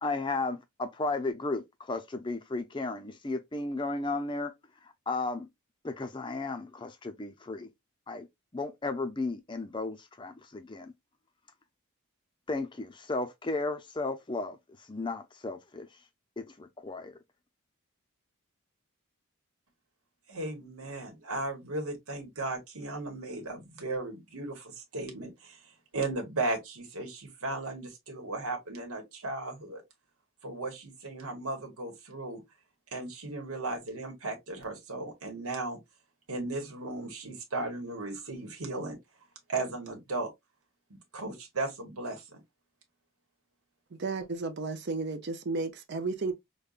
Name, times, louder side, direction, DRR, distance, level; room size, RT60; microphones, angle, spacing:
voice 1, 0.0-4.5 5.1-5.5 5.8-7.7 8.1-8.3 8.5-10.9 12.5-14.6 14.9-15.9 16.4-17.1, left 3 dB, 20° left, 0.5 m, -34 dB
voice 2, 20.3-25.6 25.9-29.8 30.4-32.4 32.9-35.8 36.3-39.0 39.5-40.3 41.1-42.2, right 2 dB, 85° right, 1.2 m, -36 dB
voice 3, 43.9-46.3, right 3 dB, 50° right, 0.6 m, -33 dB
5.1 x 2.2 x 2.4 m
head